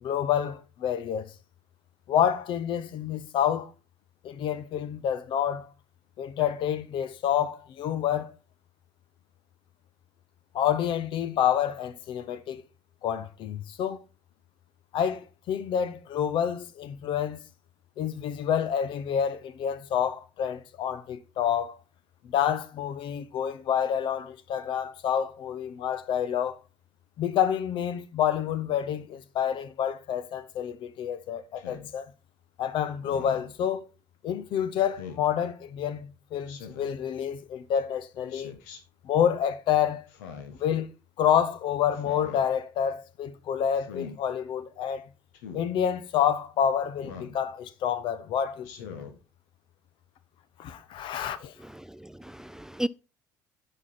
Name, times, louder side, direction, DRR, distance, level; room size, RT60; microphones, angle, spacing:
voice 1, 0.0-1.3 2.1-3.7 4.2-5.7 6.2-8.3 10.5-12.6 13.0-14.0 14.9-17.4 18.0-21.8 22.3-26.6 27.2-32.1 32.6-33.9 34.2-38.5 39.0-40.0 40.6-40.9 41.2-45.1 45.5-48.9 50.6-51.5, left 9 dB, 60° left, 0.9 m, -28 dB
Speech synthesizer, 31.6-31.9 33.0-33.5 35.0-35.3 36.5-37.0 38.3-38.8 40.1-40.6 41.9-42.4 43.7-44.2 45.3-45.7 47.0-47.4 48.6-49.1, left 6 dB, 75° left, 1.3 m, -42 dB
voice 2, 51.6-52.9, right 1 dB, 5° right, 0.4 m, -35 dB
9.7 x 5.6 x 4.3 m
hypercardioid pair, 55°, 10 cm